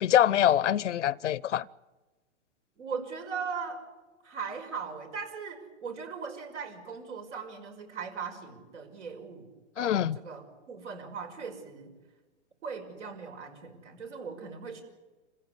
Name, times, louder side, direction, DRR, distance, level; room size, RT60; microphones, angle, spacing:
voice 1, 0.0-1.6 9.8-10.2, left 11 dB, 80° left, 0.7 m, -24 dB
voice 2, 2.8-3.8 4.2-9.5 9.8-11.9 12.6-14.8, right 5 dB, 75° right, 5.5 m, -39 dB
26.5 x 15.5 x 9.8 m
hypercardioid pair, 135°, 36 cm